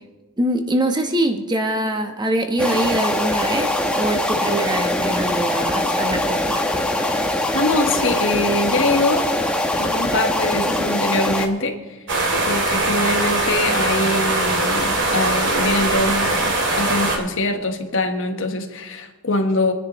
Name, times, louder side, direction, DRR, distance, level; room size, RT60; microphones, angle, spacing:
voice 1, 0.4-6.6, right 1 dB, 20° right, 5 dB, 1.0 m, -23 dB
sound 1, 2.6-11.5, left 1 dB, 5° left, 1.0 m, -22 dB
voice 2, 7.5-9.3 9.8-12.0 12.5-19.7, left 2 dB, 60° left, 5 dB, 1.3 m, -23 dB
sound 2, 12.1-17.2, right 2 dB, 55° right, 2.2 m, -21 dB
25.5 x 10.0 x 3.1 m, 1.2 s
head